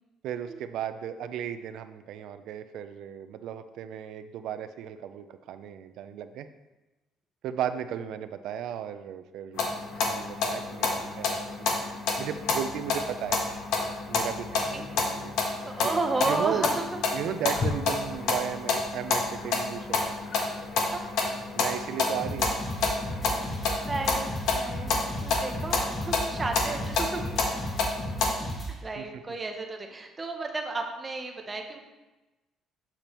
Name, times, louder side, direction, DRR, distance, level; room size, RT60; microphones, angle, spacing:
voice 1, 0.2-6.5 7.4-9.8 10.1-11.7 12.2-13.5 14.1-15.4 15.8-15.9 16.2-16.8 17.1-20.1 21.5-22.6 26.6-26.9 29.0-29.1, right 9 dB, 70° right, 10 dB, 0.5 m, -35 dB
sound 1, 9.6-28.3, left 4 dB, 75° left, 1.2 m, -29 dB
voice 2, 15.6-16.8 20.9-21.1 23.9-27.2 28.4-31.8, right 3 dB, 20° right, 3 dB, 0.8 m, -33 dB
Wild animals, 17.2-25.7, left 4 dB, 40° left, 0.7 m, -42 dB
sound 2, 22.2-28.7, equal, 10° left, 1.3 m, -35 dB
7.1 x 6.7 x 3.0 m, 1.1 s
cardioid pair, 160°, 0 cm